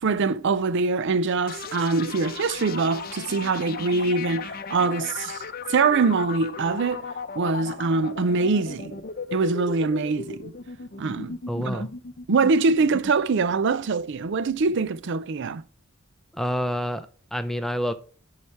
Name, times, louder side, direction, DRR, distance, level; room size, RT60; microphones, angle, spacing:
voice 1, 0.0-5.4 5.7-7.1 7.4-9.0 9.3-10.5 11.0-11.8 12.3-15.6, right 4 dB, 55° right, 0.5 m, -24 dB
sound 1, 1.5-15.1, left 4 dB, 45° left, 0.7 m, -36 dB
voice 2, 11.5-11.9 16.3-17.9, equal, ahead, 0.7 m, -28 dB
11.0 x 4.8 x 4.5 m
head